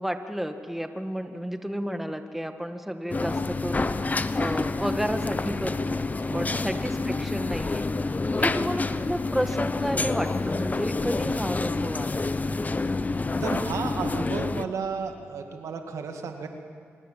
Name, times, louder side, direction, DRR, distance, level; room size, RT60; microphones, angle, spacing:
voice 1, 0.0-4.0 4.4-7.9 8.4-12.3, equal, 5° right, 7 dB, 1.8 m, -32 dB
sound 1, 3.1-14.6, left 3 dB, 30° left, 1.0 m, -28 dB
voice 2, 6.3-6.6 8.4-8.6 13.4-16.5, right 5 dB, 85° right, 5 dB, 2.1 m, -33 dB
26.5 x 21.5 x 7.6 m, 2.1 s
cardioid pair, 60°, 5 cm